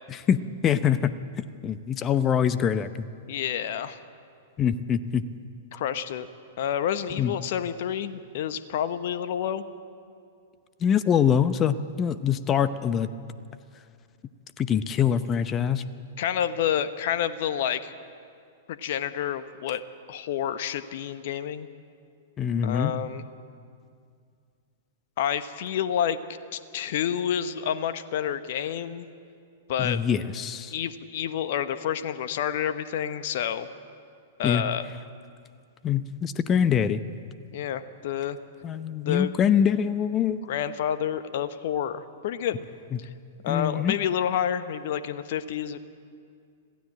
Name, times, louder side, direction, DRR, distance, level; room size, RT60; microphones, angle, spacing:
voice 1, 0.1-1.1 1.4-2.9 4.6-5.2 7.2-7.3 10.8-13.1 14.6-15.8 22.4-22.9 29.8-30.7 34.4-34.6 35.8-37.0 38.6-40.4 43.5-43.9, left 8 dB, 25° left, 13 dB, 0.8 m, -24 dB
voice 2, 3.3-4.0 5.7-6.3 6.6-9.6 16.2-17.9 18.7-19.8 20.1-21.7 22.6-23.2 25.2-26.2 26.5-29.1 29.7-30.0 30.7-33.7 34.4-34.8 37.5-38.4 39.0-39.3 40.5-42.6 43.0-43.1 43.4-45.8, left 9 dB, 55° left, 12 dB, 1.0 m, -29 dB
26.0 x 16.0 x 7.6 m, 2.3 s
figure-of-eight pair, 105°, 0 cm